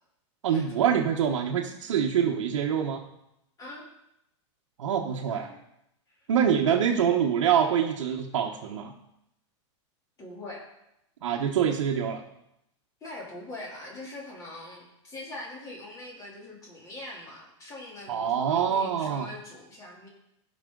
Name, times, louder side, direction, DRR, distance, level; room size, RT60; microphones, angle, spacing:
voice 1, 0.4-3.0 4.8-5.5 6.3-8.9 11.2-12.2 18.1-19.3, right 8 dB, 85° right, -1 dB, 1.2 m, -25 dB
voice 2, 5.3-5.6 6.1-6.2 6.7-6.9 10.2-10.6 13.0-20.1, left 2 dB, 20° left, -3 dB, 3.2 m, -43 dB
16.0 x 5.9 x 3.9 m, 0.83 s
supercardioid pair, 150°, 16 cm